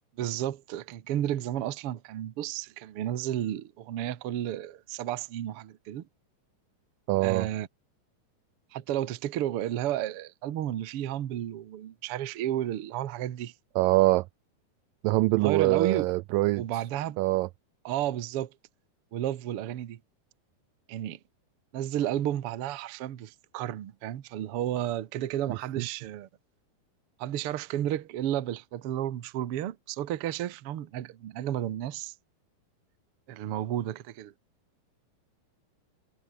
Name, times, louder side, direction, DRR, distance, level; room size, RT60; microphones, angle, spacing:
voice 1, 0.2-6.0 7.2-7.7 8.7-13.5 15.4-16.1 16.6-17.2 17.8-18.5 19.1-20.0 20.9-21.2 21.7-26.3 27.2-32.1 33.3-34.3, right 12 dB, 70° right, 1.4 m, -32 dB
voice 2, 7.1-7.5 13.8-14.3 15.0-16.8 17.2-17.5 25.8-25.9, right 20 dB, 85° right, 2.0 m, -24 dB
omnidirectional pair, 4.4 m